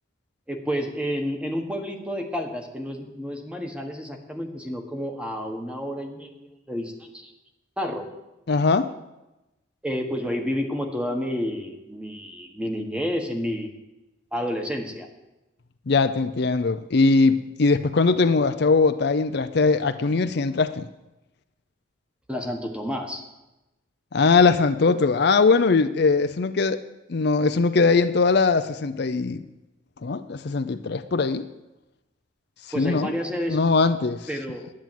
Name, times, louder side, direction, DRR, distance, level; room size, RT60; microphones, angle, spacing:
voice 1, 0.5-7.3 7.8-8.1 9.8-13.7 14.3-15.1 22.3-23.2 32.7-33.6 34.3-34.7, equal, 5° right, 3 dB, 1.3 m, -30 dB
voice 2, 8.5-8.9 15.9-20.9 24.1-26.8 27.1-29.4 30.0-31.4 32.8-33.1 33.5-34.3, left 4 dB, 55° left, 10 dB, 0.5 m, -21 dB
10.5 x 7.4 x 9.1 m, 0.98 s
head